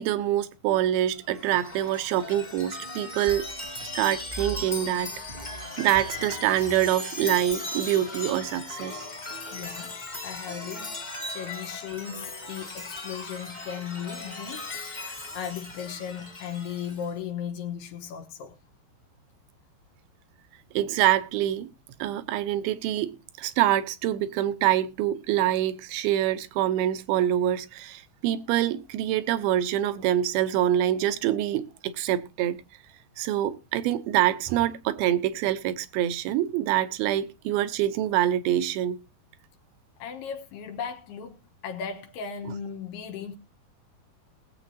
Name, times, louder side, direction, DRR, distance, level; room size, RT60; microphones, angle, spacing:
voice 1, 0.0-3.5 3.9-5.1 5.6-9.1 20.7-21.7 22.0-32.6 33.2-39.0, right 12 dB, 75° right, 2.6 m, -25 dB
Chime, 1.2-17.1, left 2 dB, 20° left, 1.4 m, -38 dB
voice 2, 9.5-10.0 10.2-18.5 40.0-43.4, left 8 dB, 80° left, 3.1 m, -37 dB
20.5 x 7.9 x 2.8 m
omnidirectional pair, 4.7 m